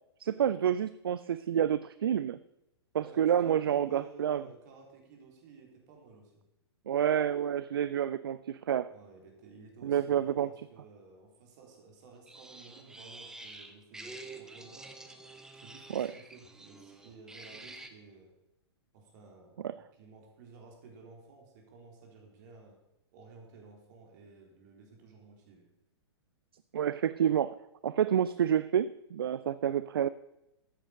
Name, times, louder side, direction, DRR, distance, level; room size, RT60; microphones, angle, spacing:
voice 1, 0.2-2.4 2.9-4.4 6.9-8.9 9.8-10.5 15.9-16.1 19.6-19.7 26.7-27.6 27.8-30.1, right 9 dB, 55° right, 16 dB, 0.4 m, -29 dB
voice 2, 2.9-6.4 8.9-14.9 15.5-18.3 18.9-22.7 23.1-25.7, right 4 dB, 40° right, 1 dB, 3.8 m, -54 dB
sound 1, 12.3-17.9, right 2 dB, 5° right, 0.8 m, -48 dB
13.0 x 9.1 x 5.2 m, 0.90 s
figure-of-eight pair, 110°, 14 cm